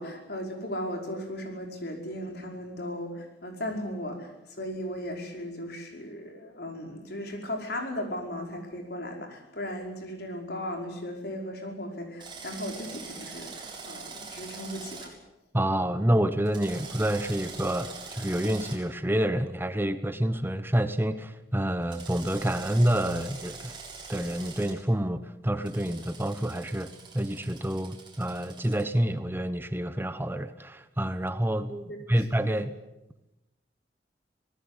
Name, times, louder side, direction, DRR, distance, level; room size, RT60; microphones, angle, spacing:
voice 1, 0.0-15.1 31.9-32.2, left 1 dB, 65° left, 3 dB, 5.2 m, -36 dB
Drill, 12.2-15.1 16.5-18.8 21.9-24.7 25.6-28.8, right 4 dB, 30° right, 7.2 m, -43 dB
voice 2, 15.5-23.8 24.1-32.7, right 1 dB, 15° right, 11 dB, 0.9 m, -28 dB
26.0 x 19.0 x 8.2 m, 0.94 s
head